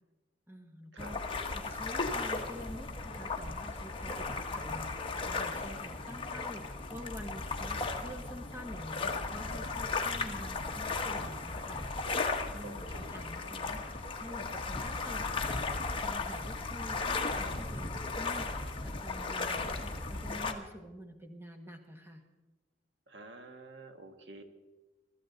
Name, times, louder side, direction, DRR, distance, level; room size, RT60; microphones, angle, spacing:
voice 1, 0.5-1.2 1.5-11.9 12.5-15.6 16.0-18.5 18.8-22.2, equal, 15° right, 4 dB, 1.7 m, -48 dB
sound 1, 1.0-20.5, left 3 dB, 30° left, 1.3 m, -36 dB
voice 2, 12.6-13.5 23.1-24.4, right 2 dB, 70° right, 6 dB, 1.5 m, -49 dB
24.0 x 13.5 x 4.0 m, 1.1 s
head